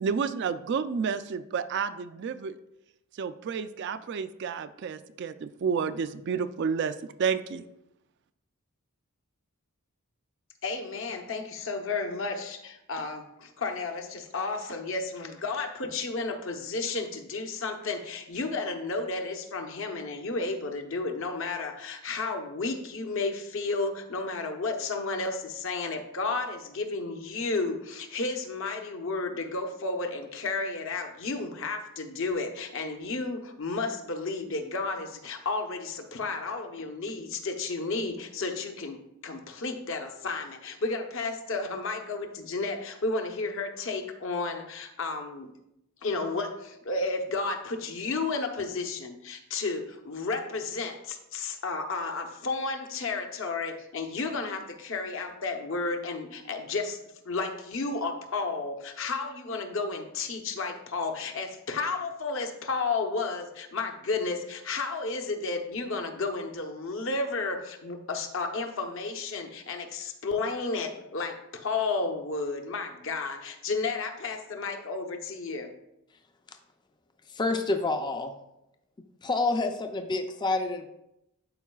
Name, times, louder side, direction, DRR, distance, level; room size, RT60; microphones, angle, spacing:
voice 1, 0.0-2.6 3.1-7.7, right 6 dB, 50° right, 12 dB, 0.3 m, -30 dB
voice 2, 10.6-39.0 39.2-45.5 46.0-57.0 57.2-75.7, left 3 dB, 60° left, 4 dB, 0.8 m, -32 dB
voice 3, 77.3-78.4 79.2-80.9, left 3 dB, 20° left, 6 dB, 0.4 m, -28 dB
11.5 x 4.6 x 2.3 m, 0.85 s
head